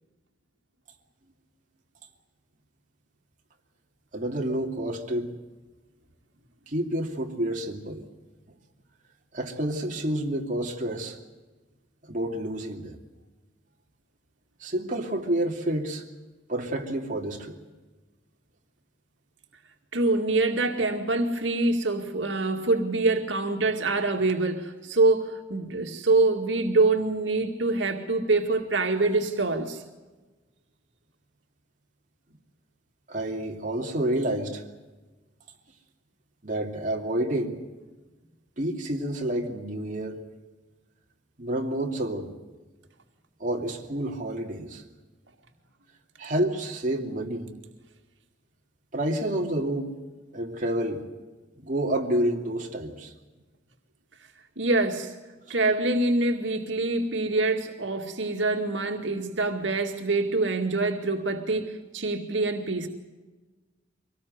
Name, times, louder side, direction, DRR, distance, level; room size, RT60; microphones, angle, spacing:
voice 1, 4.1-5.3 6.7-8.0 9.3-11.2 12.0-13.0 14.6-16.0 16.5-17.5 33.1-34.6 36.4-37.6 38.6-40.2 41.4-42.3 43.4-44.8 46.2-47.5 48.9-49.9 50.3-51.0 51.6-53.1, right 1 dB, 45° right, 2.8 m, -29 dB
voice 2, 19.9-29.8 54.6-55.1 55.5-62.9, right 2 dB, 85° right, 2.2 m, -25 dB
24.5 x 19.0 x 7.9 m
head